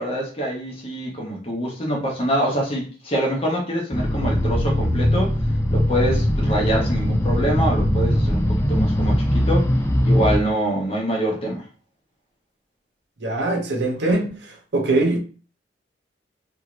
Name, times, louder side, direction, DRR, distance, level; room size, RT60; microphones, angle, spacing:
voice 1, 0.0-5.3 5.7-9.7 10.0-11.6 14.0-14.2, right 1 dB, 35° left, 0.9 m, -25 dB
sound 1, 3.9-10.4, equal, 15° left, 0.4 m, -20 dB
voice 2, 13.2-15.2, right 2 dB, 65° right, 0.6 m, -22 dB
2.8 x 2.5 x 3.0 m
head